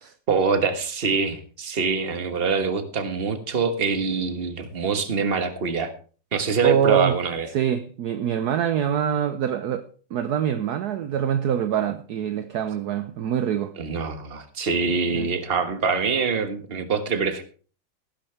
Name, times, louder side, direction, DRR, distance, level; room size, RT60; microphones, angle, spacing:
voice 1, 0.3-5.9 6.3-7.5 13.8-17.4, right 5 dB, 35° right, 1.4 m, -24 dB
voice 2, 6.6-7.2 7.5-9.8 10.1-13.7 15.1-15.3, right 9 dB, 65° right, 1.1 m, -24 dB
17.5 x 10.5 x 3.3 m
omnidirectional pair, 2.1 m